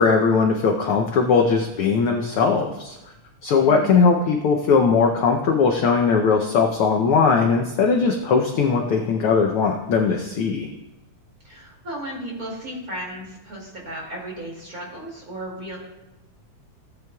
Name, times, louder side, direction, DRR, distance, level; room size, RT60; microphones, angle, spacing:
voice 1, 0.0-3.0 3.4-10.7, left 5 dB, 75° left, 3 dB, 1.2 m, -19 dB
voice 2, 11.4-15.9, right 1 dB, 30° right, -3 dB, 2.6 m, -34 dB
16.5 x 9.1 x 2.4 m, 1.0 s
omnidirectional pair, 3.4 m